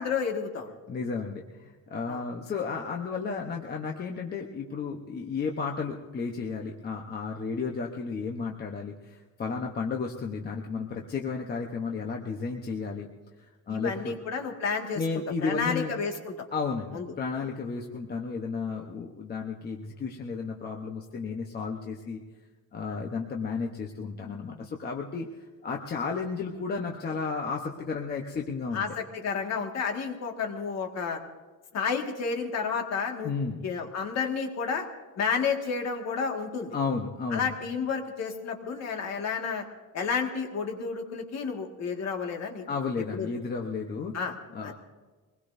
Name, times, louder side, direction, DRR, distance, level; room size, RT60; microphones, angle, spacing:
voice 1, 0.0-0.7 2.1-2.2 13.7-15.0 15.4-16.3 16.9-17.1 22.9-23.0 28.7-31.2 31.7-33.3 33.6-34.9 35.2-36.8 37.3-39.6 39.9-42.7 43.1-43.3 44.1-44.3 44.6-44.7, left 5 dB, 50° left, 3 dB, 1.9 m, -31 dB
voice 2, 0.9-13.1 13.7-14.1 15.0-15.9 16.5-22.2 22.7-25.3 25.6-28.8 33.2-33.6 36.7-37.5 42.7-44.1 44.5-44.7, left 5 dB, 30° left, 1 dB, 1.0 m, -33 dB
24.0 x 20.0 x 2.7 m, 1.3 s
cardioid pair, 170°, 35 cm